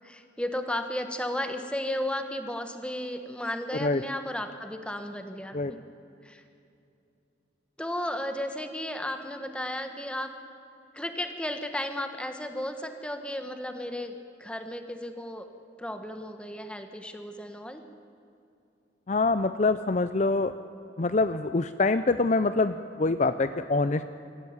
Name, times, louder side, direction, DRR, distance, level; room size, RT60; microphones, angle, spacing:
voice 1, 0.0-5.8 6.2-6.4 7.8-10.3 10.9-14.1 14.4-15.5 15.8-17.8, left 1 dB, 5° left, 7 dB, 1.4 m, -34 dB
voice 2, 19.1-20.5 21.0-24.0, left 3 dB, 40° left, 11 dB, 0.5 m, -25 dB
23.5 x 14.5 x 9.5 m, 2.6 s
head